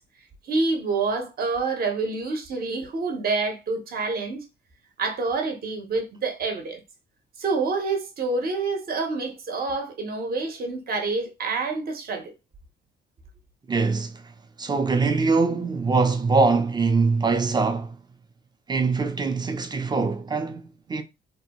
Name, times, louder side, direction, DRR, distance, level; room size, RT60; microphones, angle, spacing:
voice 1, 0.5-4.4 5.0-6.8 7.4-12.3, right 3 dB, 50° right, 0.7 m, -27 dB
voice 2, 13.7-14.2 14.6-18.0 18.7-21.0, right 4 dB, 20° right, 0.4 m, -23 dB
2.6 x 2.2 x 2.8 m
cardioid pair, 90°, 20 cm